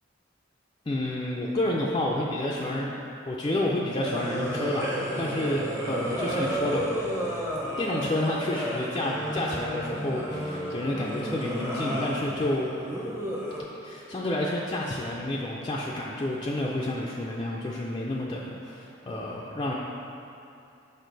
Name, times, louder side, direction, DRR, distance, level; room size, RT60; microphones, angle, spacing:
voice 1, 0.9-2.9 3.3-4.9 5.2-6.9 7.8-12.7 13.8-19.7, left 1 dB, 25° left, -4 dB, 0.4 m, -29 dB
sound 1, 4.0-13.6, equal, 15° right, 0.8 m, -32 dB
6.4 x 5.3 x 3.9 m, 2.7 s
head